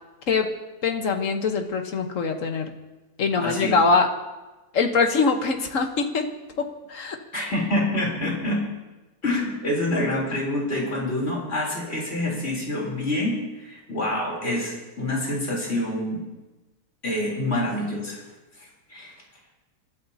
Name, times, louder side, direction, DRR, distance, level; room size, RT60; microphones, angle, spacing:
voice 1, 0.8-2.7 3.2-4.1 4.7-6.3 6.6-7.2, left 4 dB, 55° left, 5 dB, 1.5 m, -23 dB
voice 2, 3.4-3.8 7.3-8.6 9.2-16.2 17.0-18.2 18.9-19.1, left 1 dB, 40° left, -3 dB, 3.9 m, -26 dB
26.5 x 12.5 x 2.8 m, 1.1 s
omnidirectional pair, 1.7 m